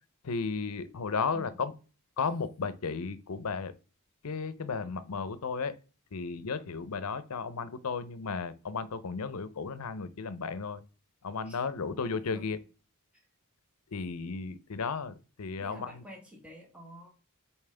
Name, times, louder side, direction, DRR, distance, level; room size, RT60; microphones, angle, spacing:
voice 1, 0.2-1.7 2.2-3.7 4.2-5.8 6.1-10.8 11.2-12.6 13.9-16.0, left 5 dB, 80° left, 0.6 m, -34 dB
voice 2, 1.3-1.7 11.4-11.6 12.3-12.5 15.6-17.1, equal, 5° right, 1.4 m, -48 dB
7.1 x 4.4 x 3.3 m
head